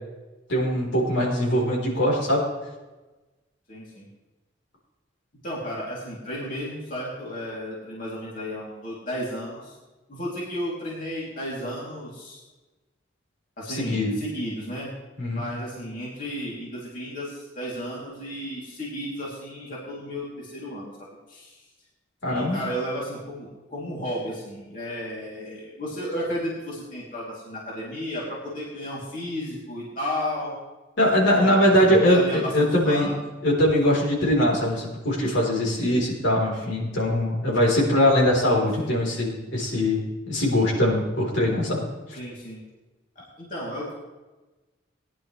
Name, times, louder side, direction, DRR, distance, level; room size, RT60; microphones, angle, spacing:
voice 1, 0.5-2.4 13.7-14.1 15.2-15.4 22.2-22.6 31.0-33.1 33.4-41.8, left 1 dB, 70° left, -3 dB, 3.9 m, -22 dB
voice 2, 3.7-4.1 5.4-9.8 10.1-12.4 13.6-14.9 15.3-21.6 22.3-30.5 31.4-33.2 38.5-39.0 42.1-42.6 43.1-44.0, equal, 45° left, -6 dB, 3.0 m, -33 dB
19.0 x 10.5 x 3.3 m, 1.2 s
head